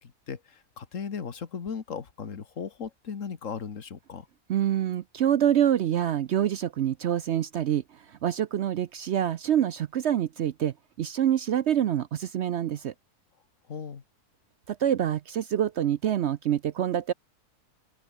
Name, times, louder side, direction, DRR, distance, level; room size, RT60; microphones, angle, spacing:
voice 1, 0.0-4.3 13.7-14.0, left 6 dB, 55° left, 1.9 m, -37 dB
voice 2, 4.5-12.9 14.7-17.1, right 10 dB, 65° right, 0.7 m, -26 dB
open air
omnidirectional pair, 1.6 m